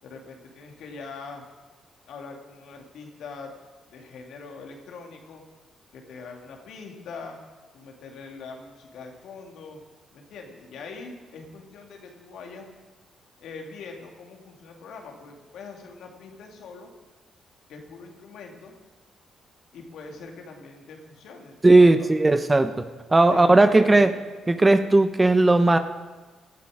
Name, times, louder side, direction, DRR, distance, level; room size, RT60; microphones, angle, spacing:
voice 1, 0.0-1.4 2.1-3.5 3.9-5.4 5.9-7.4 7.7-9.8 10.1-12.7 13.4-16.9 17.7-18.7 19.7-22.3 23.3-24.2, left 4 dB, 75° left, 2 dB, 2.5 m, -42 dB
voice 2, 21.6-22.7 23.1-24.1 24.5-25.8, right 2 dB, 20° right, 9 dB, 1.0 m, -17 dB
18.0 x 11.0 x 5.0 m, 1.3 s
supercardioid pair, 55°, 0 cm